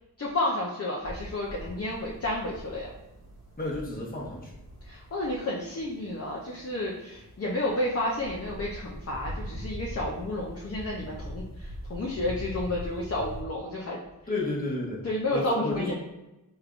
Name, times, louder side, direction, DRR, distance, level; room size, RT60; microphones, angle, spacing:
voice 1, 0.2-2.9 4.9-14.0 15.0-15.9, left 1 dB, 40° left, -3 dB, 0.6 m, -31 dB
sound 1, 1.0-13.4, equal, 45° right, 1.3 m, -42 dB
voice 2, 3.6-4.5 14.3-15.0 15.3-15.9, left 2 dB, 25° left, -3 dB, 1.0 m, -31 dB
3.5 x 3.3 x 2.4 m, 0.96 s
wide cardioid pair, 60°, 37 cm